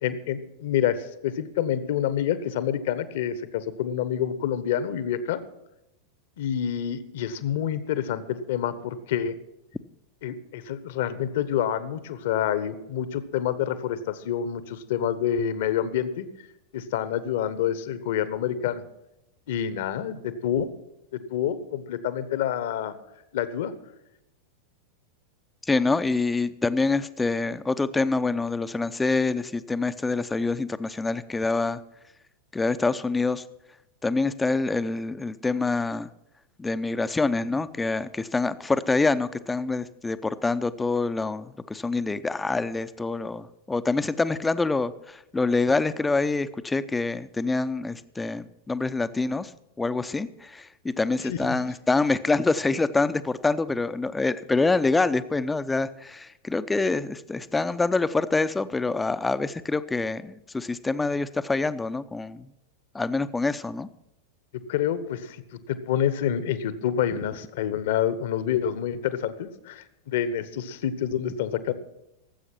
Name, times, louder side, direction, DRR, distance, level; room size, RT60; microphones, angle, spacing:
voice 1, 0.0-5.4 6.4-9.4 10.2-16.3 16.7-18.8 19.5-20.7 21.1-22.9 23.3-23.7 51.2-51.6 64.7-65.4 65.7-71.7, left 9 dB, 55° left, 14 dB, 1.1 m, -27 dB
voice 2, 25.7-31.8 32.5-33.4 34.0-36.1 36.6-49.5 49.8-62.5 62.9-63.9, left 3 dB, 10° left, 13 dB, 0.7 m, -26 dB
18.0 x 8.0 x 6.0 m, 0.88 s
figure-of-eight pair, 90°, 0 cm